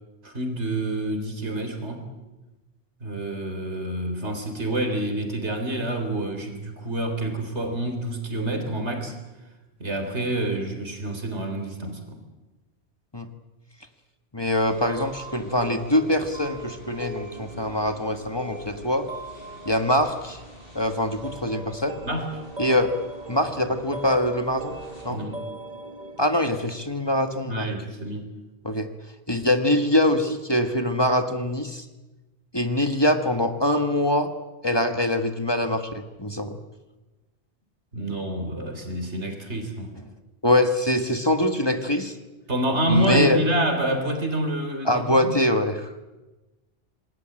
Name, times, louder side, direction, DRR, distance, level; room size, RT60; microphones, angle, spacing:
voice 1, 0.2-2.1 3.0-9.1 9.8-12.2 22.0-22.3 25.1-25.4 27.4-28.3 37.9-39.9 42.5-45.3, right 1 dB, 85° right, 6 dB, 4.0 m, -27 dB
voice 2, 14.3-19.1 19.6-20.4 20.7-22.0 22.6-22.9 23.3-24.8 25.0-25.2 26.2-27.7 28.6-28.9 29.3-31.8 32.5-34.3 34.6-36.6 40.4-42.1 42.9-43.4 44.8-45.9, left 1 dB, 20° left, 7 dB, 1.5 m, -23 dB
sound 1, 14.5-25.0, equal, 55° left, 6.6 m, -49 dB
sound 2, 14.9-27.5, right 2 dB, 40° right, 2.0 m, -40 dB
26.5 x 20.0 x 8.9 m, 1.1 s
omnidirectional pair, 1.1 m